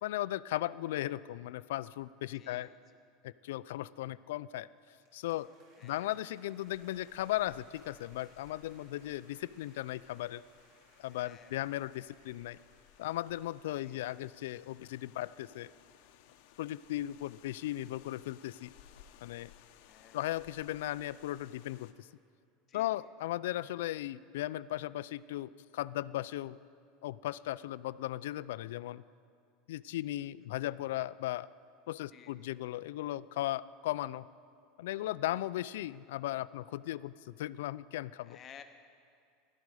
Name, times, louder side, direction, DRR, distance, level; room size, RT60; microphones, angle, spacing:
voice 1, 0.0-2.7 3.2-4.7 5.1-5.5 5.8-10.4 11.0-12.6 13.0-15.7 16.6-18.7 19.2-19.5 20.1-22.1 22.7-26.6 27.0-29.0 29.7-31.5 31.9-34.3 34.8-38.4, left 14 dB, 90° left, 18 dB, 0.3 m, -37 dB
voice 2, 2.3-2.8 5.8-6.1 11.1-11.6 13.8-14.0 19.7-20.2 22.7-22.9 30.2-30.3 32.1-32.4 38.2-38.6, left 8 dB, 25° left, 7 dB, 0.8 m, -55 dB
sound 1, 4.8-15.1, right 2 dB, 50° right, 2.9 m, -67 dB
sound 2, 6.7-21.9, left 10 dB, 60° left, 0.7 m, -61 dB
15.5 x 12.0 x 4.8 m, 2.3 s
supercardioid pair, 170°, 0 cm